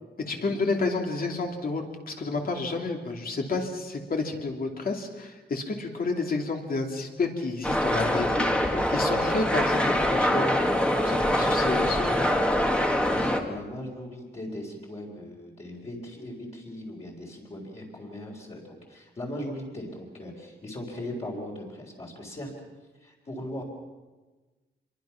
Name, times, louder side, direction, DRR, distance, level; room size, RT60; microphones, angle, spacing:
voice 1, 0.3-12.5, left 3 dB, 50° left, 2 dB, 2.8 m, -30 dB
sound 1, 7.6-13.4, equal, 5° left, 1.8 m, -24 dB
voice 2, 13.0-22.5 23.0-23.6, left 1 dB, 35° left, -3 dB, 3.9 m, -39 dB
26.5 x 22.5 x 5.9 m, 1.2 s
wide cardioid pair, 165°, 19 cm